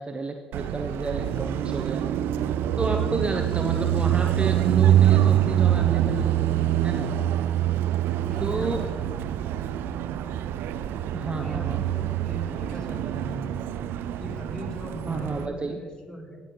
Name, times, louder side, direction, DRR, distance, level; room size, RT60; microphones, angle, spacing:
voice 1, 0.0-2.0 2.8-6.5 6.8-7.1 8.4-8.8 11.1-11.8 15.1-15.8, right 3 dB, 30° right, 4 dB, 0.8 m, -31 dB
Car passing by, 0.5-15.5, right 11 dB, 65° right, 0.4 m, -25 dB
voice 2, 8.2-8.9 11.3-13.7 14.1-16.4, right 1 dB, 20° left, -1 dB, 3.3 m, -39 dB
17.0 x 6.8 x 3.1 m, 1.5 s
hypercardioid pair, 50°, 4 cm